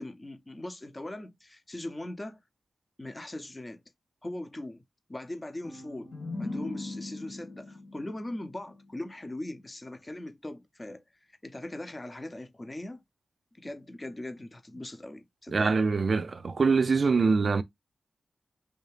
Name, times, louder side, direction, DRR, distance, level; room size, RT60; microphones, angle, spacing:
voice 1, 0.0-2.4 3.0-3.8 4.2-4.8 5.1-6.1 6.4-13.0 13.5-15.8, left 1 dB, 25° left, 0.6 m, -40 dB
sound 1, 5.6-9.3, left 2 dB, 75° left, 1.7 m, -40 dB
voice 2, 15.5-17.6, right 4 dB, 60° right, 0.4 m, -24 dB
3.3 x 2.7 x 3.2 m
wide cardioid pair, 90°, 0 cm